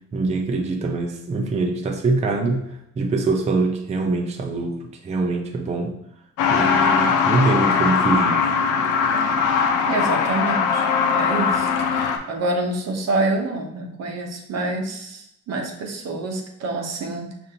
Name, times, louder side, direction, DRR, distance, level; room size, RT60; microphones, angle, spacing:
voice 1, 0.1-2.6 3.0-5.9 6.5-8.4, right 3 dB, 20° right, 2 dB, 0.4 m, -23 dB
Truck, 6.4-12.2, left 6 dB, 85° left, 0.5 m, -20 dB
voice 2, 9.9-10.9 11.1-17.3, right 2 dB, 60° right, 3 dB, 0.7 m, -27 dB
5.1 x 2.5 x 2.7 m, 0.81 s
cardioid pair, 90°, 30 cm